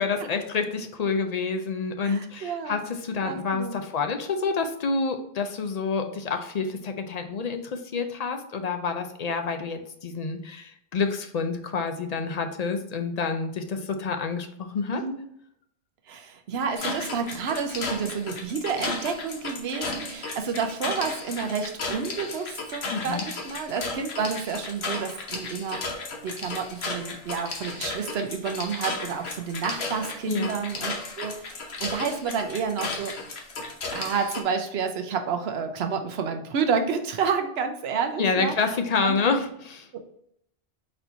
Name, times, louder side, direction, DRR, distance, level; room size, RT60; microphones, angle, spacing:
voice 1, 0.0-15.0 22.9-23.3 30.3-30.6 38.2-39.9, left 4 dB, 50° left, 6 dB, 0.5 m, -28 dB
voice 2, 2.0-2.8 3.2-3.8 14.9-15.3 16.1-25.8 26.2-33.2 33.9-38.8 39.0-39.2 39.9-40.0, right 6 dB, 75° right, 6 dB, 0.9 m, -30 dB
sound 1, 16.8-34.4, left 3 dB, 75° left, 1.2 m, -34 dB
4.3 x 4.3 x 2.7 m, 0.72 s
omnidirectional pair, 1.1 m